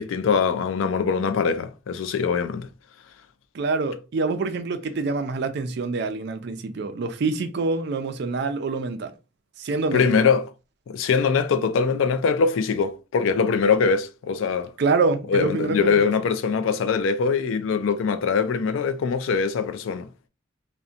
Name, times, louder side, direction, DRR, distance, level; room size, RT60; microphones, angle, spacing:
voice 1, 0.0-2.7 9.9-10.5 10.9-14.7 15.3-20.1, left 5 dB, 75° left, 0.3 m, -22 dB
voice 2, 3.5-9.1 9.6-10.0 14.8-16.1, right 3 dB, 55° right, 0.4 m, -26 dB
2.7 x 2.1 x 2.4 m
head